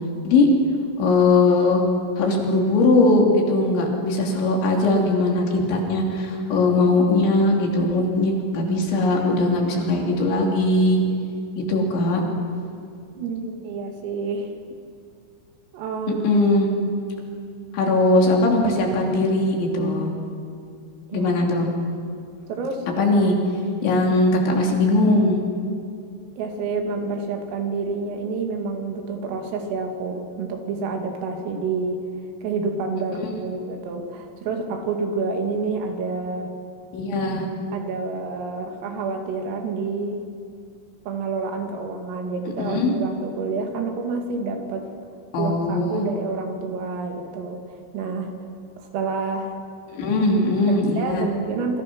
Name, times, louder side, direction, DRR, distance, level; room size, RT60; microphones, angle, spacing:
voice 1, 1.0-1.8 2.2-11.0 11.6-12.2 16.2-16.7 17.7-20.1 21.1-21.7 23.0-23.4 23.8-25.4 36.9-37.5 42.6-42.9 45.3-46.1 49.9-51.3, left 2 dB, 65° left, 0 dB, 5.3 m, -20 dB
voice 2, 13.2-14.5 15.7-16.4 21.1-21.3 22.5-22.9 26.4-32.0 32.4-36.5 37.7-40.3 41.1-44.9 45.4-47.6 47.9-48.3 48.8-49.5 50.1-50.2 50.7-51.8, right 4 dB, 90° right, 4 dB, 5.0 m, -28 dB
28.0 x 25.0 x 6.2 m, 2.4 s
omnidirectional pair, 5.8 m